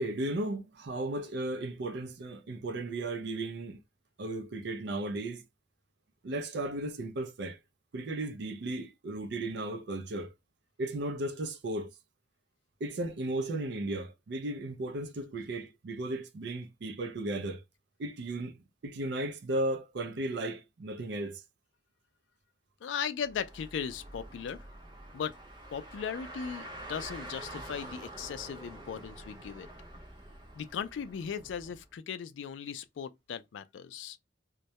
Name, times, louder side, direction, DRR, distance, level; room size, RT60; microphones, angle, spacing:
voice 1, 0.0-3.8 4.2-5.4 6.2-7.6 7.9-10.3 10.8-11.9 12.8-17.6 18.0-18.5 18.8-21.4, right 1 dB, 65° right, 0.4 m, -35 dB
voice 2, 22.8-24.7 25.1-25.3 25.7-29.7 30.6-34.2, left 7 dB, 80° left, 0.3 m, -38 dB
Car, 23.2-31.8, right 1 dB, 25° right, 0.7 m, -47 dB
2.2 x 2.0 x 2.7 m
head